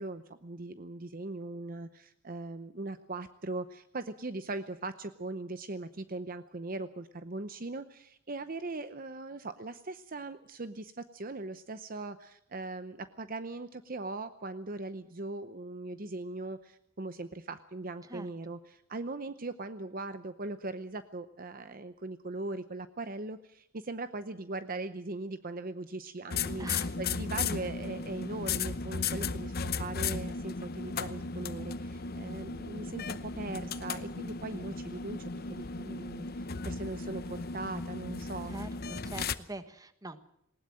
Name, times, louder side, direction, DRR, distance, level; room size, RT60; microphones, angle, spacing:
voice 1, 0.0-26.7 27.0-38.6, right 2 dB, 40° right, 11 dB, 0.8 m, -40 dB
sound 1, 26.3-39.3, left 4 dB, 45° left, 0.8 m, -36 dB
voice 2, 26.6-26.9 38.5-40.2, right 2 dB, 15° right, 11 dB, 1.3 m, -43 dB
19.5 x 19.0 x 7.6 m, 0.74 s
head